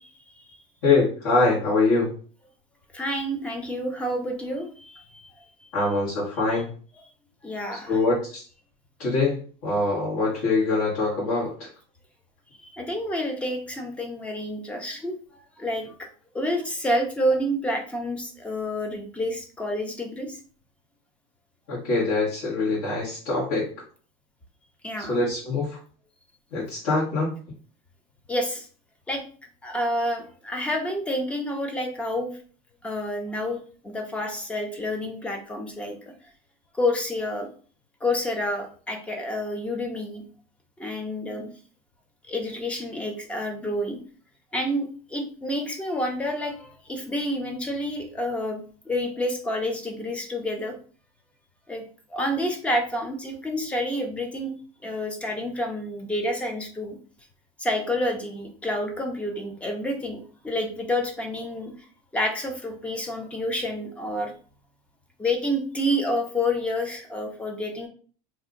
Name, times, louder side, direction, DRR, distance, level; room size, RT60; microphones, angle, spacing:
voice 1, 0.8-2.1 5.7-6.7 7.9-8.4 9.0-11.7 21.7-23.7 25.0-25.8 26.5-27.4, left 3 dB, 65° left, -7 dB, 1.6 m, -24 dB
voice 2, 2.9-5.3 7.4-8.0 12.6-16.1 16.3-20.4 24.8-25.2 28.3-28.7 29.1-29.2 29.6-32.3 32.8-35.9 36.7-37.5 38.0-40.2 40.8-41.5 42.3-44.0 44.5-50.8 51.7-51.8 52.1-54.5 54.8-57.0 57.6-61.7 62.1-64.3 65.2-67.9, left 1 dB, 5° left, 3 dB, 0.4 m, -29 dB
2.7 x 2.4 x 3.7 m, 0.41 s
supercardioid pair, 170°, 19 cm